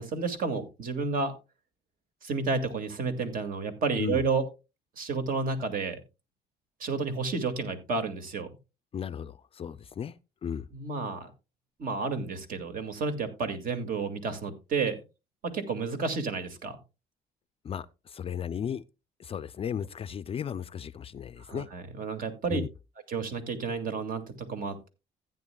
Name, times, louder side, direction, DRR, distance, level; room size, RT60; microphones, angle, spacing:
voice 1, 0.0-1.3 2.2-4.4 5.0-6.0 6.8-8.5 10.7-11.3 11.8-15.0 15.4-16.8 21.4-22.6 23.1-24.9, right 4 dB, 55° right, 2.1 m, -31 dB
voice 2, 8.9-10.2 10.4-10.7 17.6-18.8 19.2-21.7 22.5-22.7, left 8 dB, 35° left, 0.4 m, -35 dB
15.5 x 9.1 x 2.3 m
cardioid pair, 110°, 17 cm